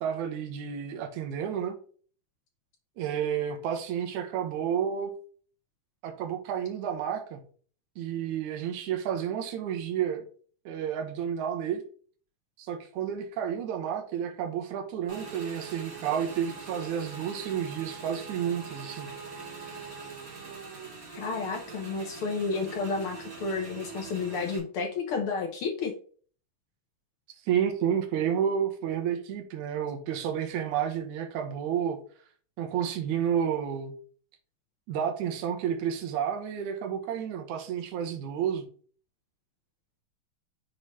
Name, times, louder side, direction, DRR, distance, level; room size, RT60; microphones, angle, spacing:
voice 1, 0.0-1.8 3.0-5.1 6.0-7.4 8.0-10.2 10.7-11.8 12.6-19.1 27.5-32.0 32.6-33.9 34.9-38.6, right 8 dB, 75° right, 4 dB, 2.3 m, -30 dB
Motorcycle / Engine, 15.1-24.6, right 5 dB, 35° right, 1.7 m, -43 dB
voice 2, 21.1-25.9, left 4 dB, 70° left, 3 dB, 1.3 m, -31 dB
6.6 x 3.8 x 4.1 m, 0.43 s
omnidirectional pair, 3.6 m